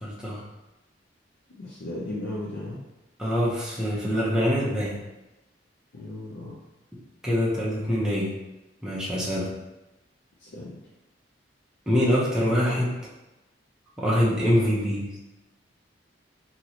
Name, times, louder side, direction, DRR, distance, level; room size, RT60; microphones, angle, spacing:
voice 1, 0.0-0.4 3.2-5.0 7.2-8.3 8.8-9.5 11.9-12.9 14.0-15.1, equal, 5° right, -7 dB, 0.6 m, -24 dB
voice 2, 1.5-2.8 5.9-6.6 10.4-10.8, left 1 dB, 65° left, -6 dB, 0.5 m, -36 dB
3.0 x 2.8 x 2.7 m, 1.0 s
head